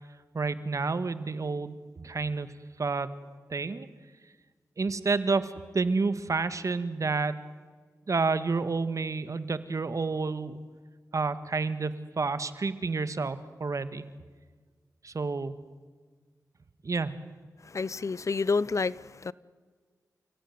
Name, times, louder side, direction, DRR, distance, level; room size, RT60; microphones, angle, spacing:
voice 1, 0.3-2.5 2.8-3.1 3.5-3.9 4.8-7.4 8.1-10.6 11.1-14.1 15.0-15.6 16.8-17.1, right 4 dB, 55° right, 1.8 m, -29 dB
voice 2, 17.6-19.3, left 4 dB, 55° left, 0.7 m, -29 dB
30.0 x 16.5 x 9.5 m
cardioid pair, 55°, 6 cm